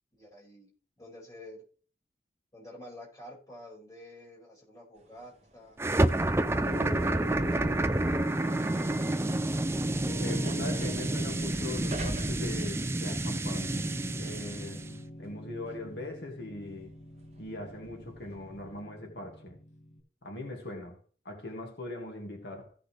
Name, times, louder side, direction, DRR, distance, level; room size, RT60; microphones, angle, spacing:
voice 1, 0.2-0.7 1.0-1.6 2.5-5.8 6.4-9.1, left 1 dB, 20° left, 5.2 m, -50 dB
sound 1, 5.0-13.4 13.8-18.8, right 1 dB, 35° right, 1.8 m, -46 dB
sound 2, 5.8-14.9, right 1 dB, 15° right, 0.4 m, -29 dB
Piano, 6.7-20.0, right 1 dB, 40° left, 2.2 m, -47 dB
voice 2, 10.0-13.7 14.2-16.9 17.4-19.6 20.2-21.0 21.2-22.7, left 2 dB, 80° left, 2.2 m, -40 dB
16.0 x 6.2 x 3.4 m
head